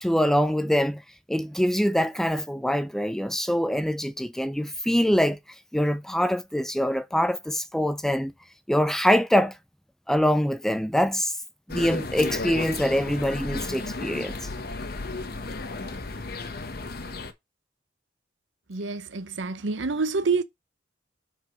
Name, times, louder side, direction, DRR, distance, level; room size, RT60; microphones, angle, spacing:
voice 1, 0.0-1.0 1.3-5.4 5.7-8.3 8.7-9.5 10.1-11.4 11.7-14.4, equal, ahead, 0.3 m, -24 dB
sound 1, 11.7-17.3, left 3 dB, 55° left, 1.0 m, -33 dB
voice 2, 18.7-20.4, right 4 dB, 75° right, 0.8 m, -27 dB
4.9 x 4.7 x 6.2 m
head